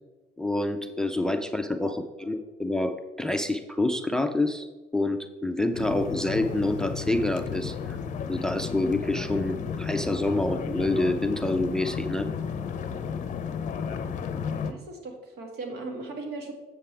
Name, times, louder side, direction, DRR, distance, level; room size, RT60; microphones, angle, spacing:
voice 1, 0.4-4.7 4.9-8.0 8.3-12.3, left 2 dB, 5° left, 8 dB, 0.5 m, -27 dB
voice 2, 1.9-2.3 14.5-16.5, right 3 dB, 70° right, 2 dB, 1.9 m, -38 dB
sound 1, 5.7-14.7, left 6 dB, 45° left, 0.6 m, -33 dB
7.6 x 7.1 x 3.4 m, 1.2 s
cardioid pair, 110°, 17 cm